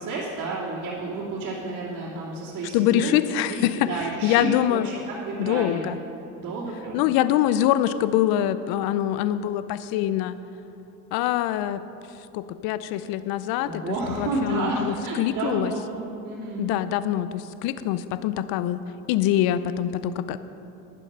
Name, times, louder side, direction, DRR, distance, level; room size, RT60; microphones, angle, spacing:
voice 1, 0.0-3.1 3.5-5.9 6.4-7.0 13.6-15.8 16.2-16.7, right 3 dB, 50° right, -9 dB, 2.9 m, -31 dB
voice 2, 2.7-4.9 5.4-6.0 6.9-10.4 11.1-11.8 12.3-15.7 16.6-18.8 19.1-20.4, left 12 dB, 60° left, 14 dB, 0.7 m, -24 dB
11.0 x 10.5 x 5.6 m, 2.8 s
supercardioid pair, 90°, 39 cm